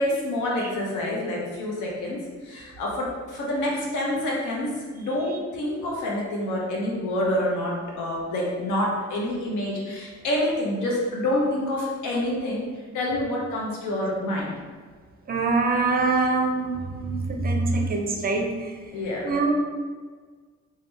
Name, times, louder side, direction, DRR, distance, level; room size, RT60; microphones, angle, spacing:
voice 1, 0.0-2.2 2.4-12.7 12.9-14.5 18.9-19.3, left 1 dB, 75° left, -3 dB, 0.8 m, -27 dB
voice 2, 15.3-18.7 19.2-19.5, right 3 dB, 30° right, 2 dB, 0.5 m, -24 dB
3.2 x 2.2 x 3.1 m, 1.5 s
cardioid pair, 90°, 30 cm